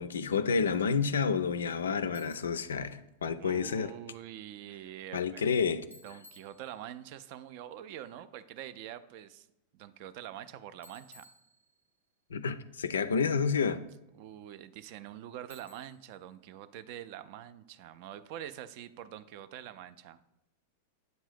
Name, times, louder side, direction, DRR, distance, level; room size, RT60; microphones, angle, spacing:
voice 1, 0.0-3.9 5.1-5.8 12.3-13.8, left 5 dB, 65° left, 13 dB, 0.3 m, -29 dB
Bicycle, 2.1-2.7 5.9-7.1 10.8-12.1 15.5-16.2, equal, 90° right, 0.8 m, -58 dB
voice 2, 3.4-5.4 6.0-9.5 9.7-11.3 14.1-20.2, right 11 dB, 45° right, 13 dB, 0.3 m, -45 dB
7.8 x 2.6 x 5.0 m, 0.92 s
figure-of-eight pair, 90°, 0 cm